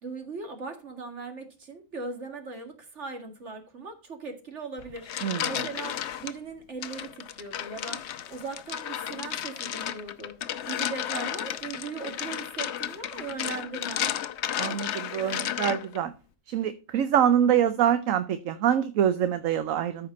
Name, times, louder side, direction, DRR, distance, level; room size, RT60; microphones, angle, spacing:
voice 1, 0.0-10.4 10.6-14.1, right 4 dB, 55° right, 2.2 m, -39 dB
sound 1, 4.8-6.3 6.8-16.0, left 10 dB, 60° left, 0.9 m, -33 dB
voice 2, 5.2-5.7 14.6-16.1 16.5-20.1, right 9 dB, 75° right, 1.1 m, -25 dB
13.5 x 5.1 x 4.1 m
omnidirectional pair, 1.4 m